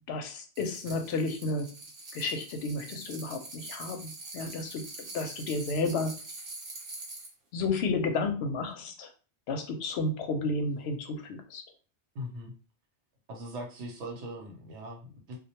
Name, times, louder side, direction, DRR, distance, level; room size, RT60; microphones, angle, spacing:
voice 1, 0.1-1.7 2.1-6.2 7.5-9.1 9.5-11.6, left 3 dB, 70° left, 6 dB, 0.8 m, -32 dB
sound 1, 0.5-7.3, right 2 dB, 55° right, 1.0 m, -44 dB
voice 2, 12.1-12.5 13.3-15.4, equal, 85° right, 1 dB, 1.0 m, -40 dB
2.2 x 2.1 x 2.8 m, 0.35 s
omnidirectional pair, 1.2 m